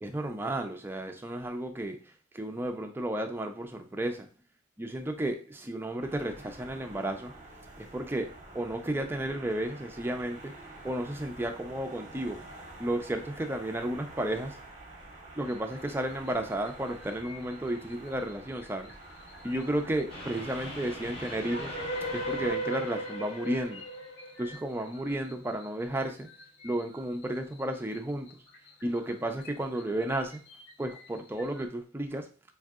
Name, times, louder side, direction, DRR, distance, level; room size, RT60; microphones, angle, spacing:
voice 1, 0.0-4.3 4.8-7.3 7.8-10.6 10.8-12.4 12.8-14.6 15.4-18.9 19.4-21.8 22.1-23.8 24.4-26.3 26.6-28.4 28.8-30.4 30.8-32.3, right 1 dB, 10° right, 5 dB, 0.4 m, -33 dB
sound 1, 6.0-22.5, right 2 dB, 40° right, 0.8 m, -48 dB
sound 2, 15.4-31.7, left 3 dB, 60° left, 0.9 m, -54 dB
Train, 20.1-25.4, right 1 dB, 30° left, 0.9 m, -37 dB
4.5 x 2.6 x 2.4 m, 0.37 s
head